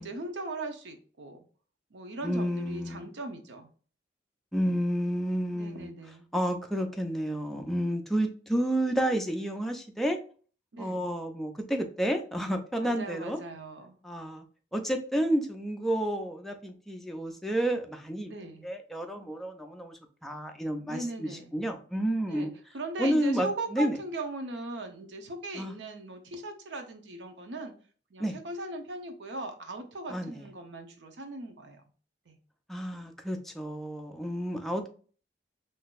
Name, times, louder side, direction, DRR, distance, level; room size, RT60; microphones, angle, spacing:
voice 1, 0.0-1.4 1.9-3.7 5.5-6.3 10.7-11.0 12.8-14.0 18.2-18.7 20.9-21.5 22.3-27.7 28.1-31.8 32.3-32.4, right 2 dB, 85° right, 6 dB, 0.7 m, -39 dB
voice 2, 2.2-3.1 4.5-5.9 6.3-10.2 10.8-13.4 14.0-14.4 14.7-18.3 18.6-22.5 23.0-24.0 25.5-25.7 28.2-28.3 30.1-30.4 32.7-34.9, equal, ahead, 3 dB, 0.4 m, -30 dB
3.7 x 2.6 x 2.4 m, 0.41 s
head